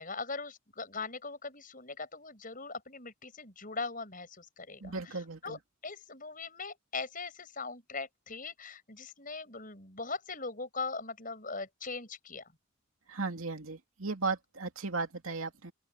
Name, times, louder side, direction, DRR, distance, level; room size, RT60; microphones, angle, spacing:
voice 1, 0.0-12.5, left 4 dB, 40° left, 8.0 m, -40 dB
voice 2, 4.8-5.6 13.1-15.7, right 4 dB, 80° right, 2.7 m, -36 dB
open air
head